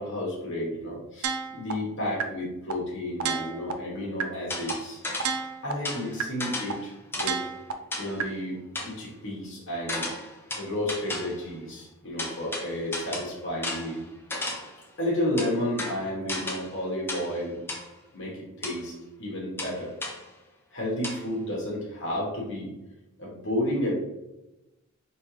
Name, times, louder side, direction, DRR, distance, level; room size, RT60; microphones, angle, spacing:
voice 1, 0.0-5.0 5.6-7.4 8.0-10.1 10.6-14.0 15.0-17.6 18.1-18.9 19.2-19.9 20.7-22.7 23.2-24.0, left 1 dB, 55° left, -4 dB, 1.2 m, -31 dB
sound 1, 1.2-1.7 2.2-2.3 2.7-2.8 3.2-3.7 4.2-4.3 4.7-4.8 5.2-5.7 6.2-6.3 6.7-6.8 7.2-7.7 8.2-8.3, right 7 dB, 75° right, 0.5 m, -29 dB
sound 2, 4.5-5.4 5.8-7.4 7.9-8.2 8.8-9.0 9.9-11.5 12.2-14.8 15.4-16.8 17.1-17.4 17.7-17.9 18.6-18.8 19.6-20.3 21.0-21.2, left 2 dB, 10° left, 0.6 m, -35 dB
5.2 x 3.1 x 3.1 m, 0.98 s
head